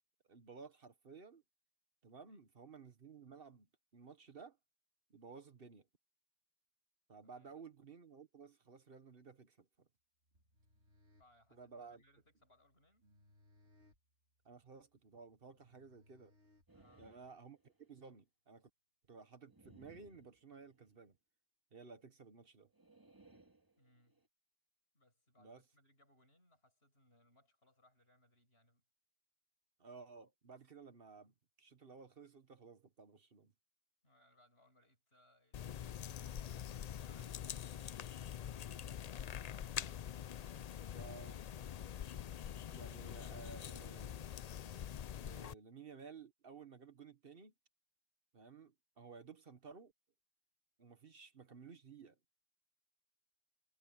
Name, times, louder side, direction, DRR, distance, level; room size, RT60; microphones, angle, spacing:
voice 1, 0.3-1.4 2.0-4.6 5.1-5.9 7.1-9.9 11.5-12.0 14.4-16.3 17.0-18.7 19.1-21.2 21.7-22.7 25.4-25.6 29.8-33.5 40.9-41.4 42.7-44.3 45.2-47.5 48.3-49.9 50.8-52.2, right 5 dB, 60° right, 1.5 m, -56 dB
voice 2, 2.1-2.4 7.2-7.6 10.7-10.8 11.2-13.1 16.7-17.1 22.0-22.1 23.8-24.2 24.9-28.8 34.0-41.4, left 1 dB, 70° left, 8.5 m, -71 dB
sound 1, 10.3-17.2, left 1 dB, 90° right, 3.0 m, -71 dB
sound 2, 16.7-18.0 19.5-21.0 22.7-24.3, right 2 dB, 20° right, 2.3 m, -65 dB
sound 3, 35.5-45.5, left 9 dB, 55° left, 0.5 m, -45 dB
omnidirectional pair, 1.1 m